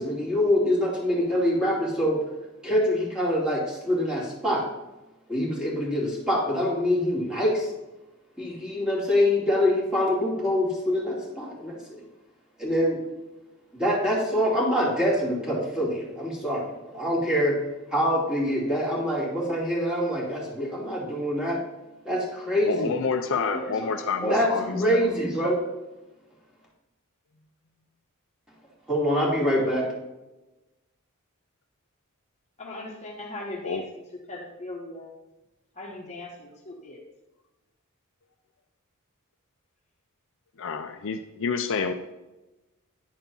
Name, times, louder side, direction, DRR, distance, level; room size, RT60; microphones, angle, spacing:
voice 1, 0.0-2.2 2.6-4.6 5.3-7.7 8.4-12.0 12.6-13.0 13.7-17.6 17.9-21.6 22.0-22.9 23.3-25.6 28.9-29.9, equal, 5° right, -6 dB, 2.5 m, -25 dB
voice 2, 22.6-25.0 33.6-33.8 40.6-41.9, left 5 dB, 60° left, 6 dB, 0.5 m, -28 dB
voice 3, 32.6-34.0 34.3-35.1 35.8-37.0, left 2 dB, 30° left, -1 dB, 1.2 m, -39 dB
10.0 x 4.5 x 5.3 m, 1.0 s
head